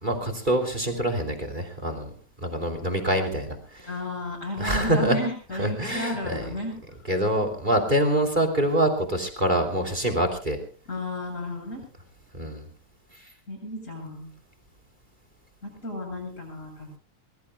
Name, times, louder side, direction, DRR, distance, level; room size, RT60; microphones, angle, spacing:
voice 1, 0.0-2.1 2.4-3.9 4.6-5.2 5.6-6.5 7.1-10.6 12.3-12.7, right 1 dB, 15° right, 7 dB, 2.8 m, -25 dB
voice 2, 3.8-6.7 10.9-11.8 13.5-14.3 15.6-17.0, left 1 dB, 20° left, 2 dB, 8.3 m, -33 dB
24.5 x 21.5 x 2.3 m, 0.37 s
omnidirectional pair, 3.6 m